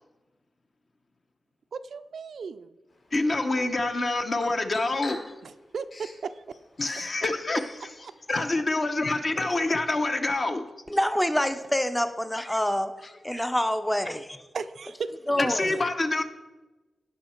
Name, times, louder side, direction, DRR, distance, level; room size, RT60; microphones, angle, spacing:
voice 1, 1.7-2.8 5.4-6.6 14.5-15.1, right 5 dB, 65° right, 11 dB, 0.4 m, -36 dB
Bird vocalization bird call bird song, 2.9-8.5, left 2 dB, 55° left, 3.4 m, -48 dB
voice 2, 3.1-5.2 6.8-7.7 8.3-10.6 15.4-16.2, left 2 dB, 35° left, 7 dB, 0.9 m, -26 dB
voice 3, 10.9-12.9 13.2-14.4 15.3-15.7, left 1 dB, 5° left, 10 dB, 0.6 m, -26 dB
17.0 x 5.7 x 4.4 m, 1.2 s
wide cardioid pair, 155°, 0 cm